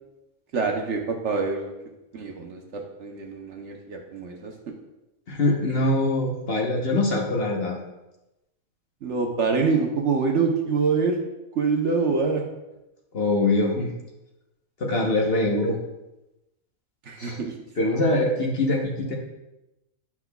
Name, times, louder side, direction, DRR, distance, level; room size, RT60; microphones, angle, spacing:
voice 1, 0.5-1.7 2.1-4.5 9.0-11.2 11.5-12.4 17.0-17.5 18.1-18.2, right 4 dB, 60° right, 2 dB, 1.0 m, -25 dB
voice 2, 5.3-7.8 13.1-13.9 14.8-15.8 17.2-17.4 17.8-19.2, left 2 dB, 45° left, -1 dB, 1.1 m, -23 dB
9.9 x 5.9 x 2.3 m, 0.96 s
omnidirectional pair, 1.5 m